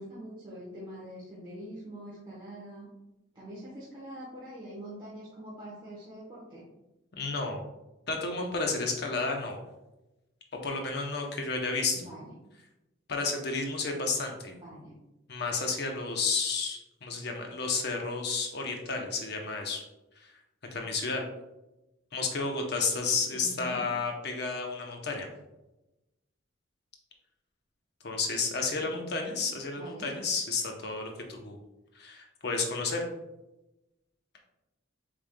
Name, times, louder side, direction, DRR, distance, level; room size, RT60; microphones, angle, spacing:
voice 1, 0.0-2.9 3.3-6.6 11.9-12.3 14.5-14.9 23.3-23.8 28.8-29.4 29.8-30.1, equal, 25° right, -8 dB, 1.0 m, -44 dB
voice 2, 7.2-7.6 8.1-9.6 10.5-12.0 13.1-14.5 15.3-19.8 20.2-20.3 20.7-21.2 22.1-25.3 28.0-31.6 31.9-33.0, left 4 dB, 55° left, 2 dB, 0.8 m, -31 dB
6.9 x 3.4 x 2.2 m, 0.98 s
head